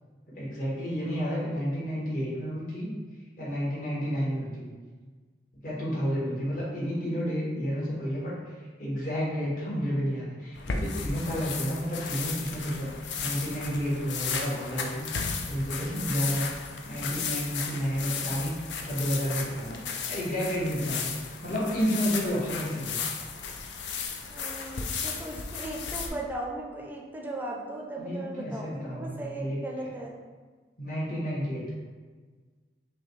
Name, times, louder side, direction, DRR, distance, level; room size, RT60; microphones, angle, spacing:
voice 1, 0.3-2.9 3.4-4.7 5.6-8.3 8.8-15.1 15.5-16.5 16.8-18.5 18.8-19.8 20.1-21.1 21.4-23.0 28.0-29.9 30.8-31.6, equal, 50° left, -7 dB, 1.4 m, -31 dB
sound 1, 10.5-26.1, left 5 dB, 90° left, 0.5 m, -35 dB
voice 2, 24.3-30.1, right 1 dB, 10° right, -1 dB, 0.5 m, -37 dB
5.7 x 2.3 x 3.2 m, 1.4 s
head